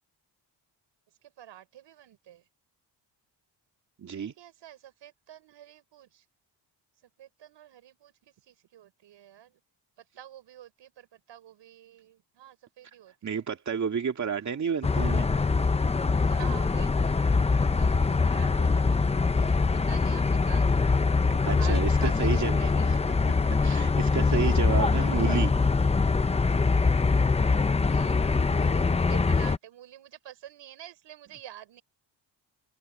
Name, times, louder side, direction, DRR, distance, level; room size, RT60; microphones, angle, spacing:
voice 1, 1.2-2.4 4.1-6.2 7.2-9.6 10.1-13.5 14.5-14.6 16.2-20.8 21.6-23.2 24.3-24.5 24.9-25.1 27.9-31.8, right 12 dB, 85° right, 6.0 m, -48 dB
voice 2, 4.0-4.3 13.2-15.5 21.4-23.0 23.3-23.4 23.6-25.6, right 6 dB, 40° right, 2.3 m, -31 dB
sound 1, 14.8-29.6, left 4 dB, 15° left, 0.6 m, -23 dB
cardioid pair, 125°, 43 cm